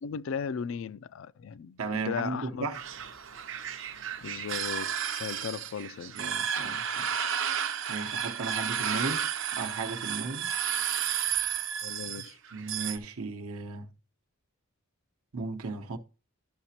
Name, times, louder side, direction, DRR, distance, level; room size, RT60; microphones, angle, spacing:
voice 1, 0.0-2.7 4.2-6.2 11.8-12.4, left 6 dB, 65° left, 0.3 m, -36 dB
voice 2, 1.8-2.8 6.1-7.1 7.9-9.2 9.6-10.5 12.5-13.9 15.3-16.0, right 3 dB, 85° right, 0.9 m, -35 dB
sound 1, 2.7-13.0, right 8 dB, 60° right, 0.7 m, -32 dB
12.0 x 5.8 x 2.8 m
head